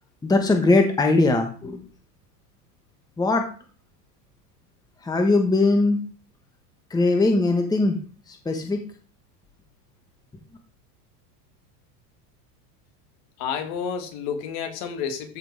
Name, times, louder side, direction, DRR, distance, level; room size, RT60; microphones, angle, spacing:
voice 1, 0.2-1.8 3.2-3.4 5.0-6.0 6.9-8.0 8.4-8.8, left 2 dB, 10° left, 4 dB, 1.3 m, -20 dB
voice 2, 13.4-15.4, left 7 dB, 55° left, 5 dB, 2.7 m, -30 dB
14.0 x 5.1 x 4.9 m, 0.39 s
supercardioid pair, 145°, 49 cm